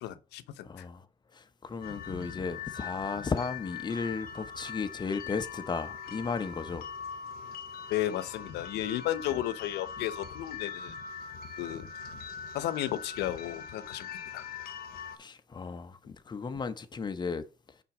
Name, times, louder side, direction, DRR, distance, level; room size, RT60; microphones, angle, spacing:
voice 1, 0.0-0.9 7.9-10.9 11.6-11.8 12.5-14.5, left 13 dB, 85° left, 0.8 m, -34 dB
voice 2, 0.6-1.1 1.3-6.9 15.2-17.8, left 5 dB, 25° left, 0.8 m, -35 dB
sound 1, 1.8-15.2, left 6 dB, 60° left, 1.0 m, -42 dB
5.7 x 4.3 x 4.9 m
cardioid pair, 110°, 17 cm